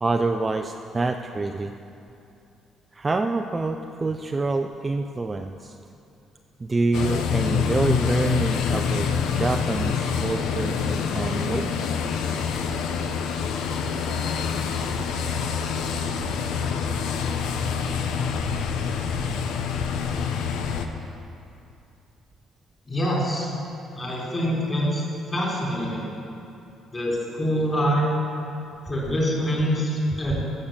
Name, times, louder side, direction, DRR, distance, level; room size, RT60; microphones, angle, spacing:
voice 1, 0.0-1.7 2.9-5.8 6.6-9.1 9.3-11.7, right 3 dB, 20° right, 5 dB, 0.4 m, -26 dB
sound 1, 6.9-20.9, left 6 dB, 85° left, 0.9 m, -26 dB
voice 2, 22.9-23.6 24.0-25.0 25.3-26.1 26.9-28.1 28.9-30.4, equal, 20° left, -4 dB, 3.5 m, -25 dB
16.0 x 6.6 x 7.3 m, 2.7 s
cardioid pair, 150°, 0 cm